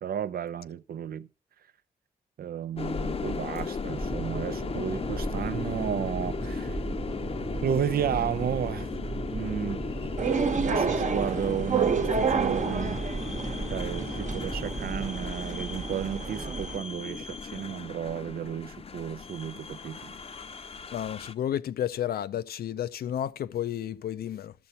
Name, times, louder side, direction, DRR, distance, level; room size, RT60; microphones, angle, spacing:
voice 1, 0.0-1.3 2.4-6.8 7.6-8.9 9.3-9.8 10.6-13.0 13.7-20.2, right 9 dB, 75° right, 0.5 m, -33 dB
sound 1, 2.8-21.3, left 5 dB, 40° left, 0.6 m, -36 dB
sound 2, 3.8-15.1, right 2 dB, 20° right, 0.7 m, -36 dB
sound 3, 10.2-16.8, right 5 dB, 50° right, 1.0 m, -30 dB
voice 2, 20.9-24.5, left 10 dB, 85° left, 0.5 m, -32 dB
12.5 x 6.8 x 5.6 m
cardioid pair, 85°, 15 cm